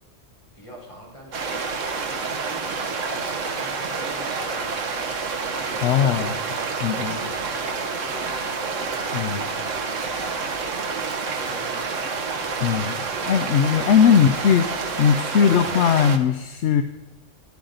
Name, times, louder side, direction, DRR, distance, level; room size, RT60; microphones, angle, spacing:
voice 1, 0.5-4.8 5.5-6.3 6.6-9.5 10.0-12.0 12.4-13.3 13.7-14.3, equal, 25° left, -4 dB, 4.2 m, -44 dB
sound 1, 1.3-16.2, right 4 dB, 80° right, 1.3 m, -28 dB
sound 2, 2.7-14.9, right 1 dB, 40° right, 2.2 m, -51 dB
Speech, 4.2-4.7 5.0-5.4 5.8-6.2 6.5-6.8 7.2-7.5 7.9-8.2 8.6-9.0 9.4-10.2 10.9-11.2, right 4 dB, 60° right, 1.7 m, -47 dB
voice 2, 5.8-6.4 6.8-7.2 9.1-9.5 12.6-13.0 13.3-14.7 15.0-16.8, left 7 dB, 70° left, 9 dB, 0.9 m, -19 dB
14.0 x 10.5 x 3.9 m, 1.2 s
omnidirectional pair, 1.3 m